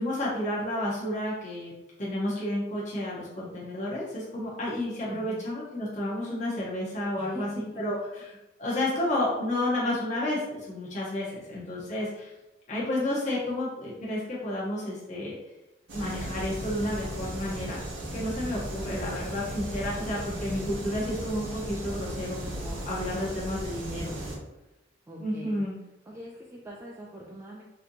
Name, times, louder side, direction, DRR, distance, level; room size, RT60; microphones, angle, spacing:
voice 1, 0.0-1.7 2.0-12.3 12.7-15.3 15.9-17.8 18.1-24.0 25.2-25.8, left 1 dB, 40° left, -7 dB, 0.9 m, -31 dB
voice 2, 5.0-5.4 7.2-7.8 23.9-24.4 25.1-25.6 26.0-27.6, equal, 15° right, -3 dB, 0.3 m, -42 dB
sound 1, 15.9-24.4, right 1 dB, 90° right, 0.8 m, -36 dB
4.2 x 2.7 x 2.7 m, 0.98 s
head